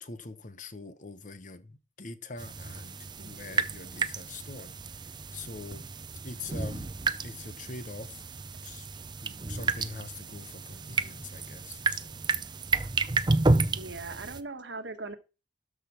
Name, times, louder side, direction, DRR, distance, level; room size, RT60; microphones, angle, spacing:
voice 1, 0.0-5.9 6.2-6.9 7.2-8.2 8.6-8.9 9.2-12.2, left 3 dB, 45° left, 1.0 m, -44 dB
sound 1, 2.4-14.4, right 3 dB, 25° right, 0.5 m, -31 dB
voice 2, 3.2-3.6 13.0-13.1 13.7-15.2, right 3 dB, 80° right, 1.6 m, -40 dB
13.0 x 5.1 x 5.9 m
head